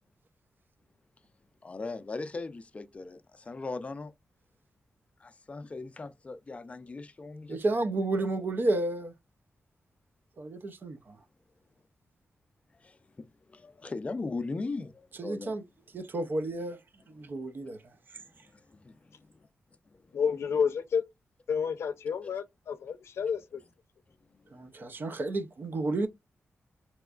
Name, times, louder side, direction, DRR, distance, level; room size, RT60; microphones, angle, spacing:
voice 1, 1.6-4.1 5.2-7.6 12.8-15.6 18.2-19.5 19.9-20.2, left 3 dB, 30° left, 0.4 m, -39 dB
voice 2, 7.5-9.1 10.4-11.2 15.2-15.6 15.9-17.8 18.1-18.2 24.5-26.1, right 2 dB, 50° right, 0.5 m, -31 dB
voice 3, 20.1-21.0 21.5-23.6, left 6 dB, 85° left, 0.5 m, -30 dB
3.4 x 3.0 x 2.3 m
wide cardioid pair, 115°, 4 cm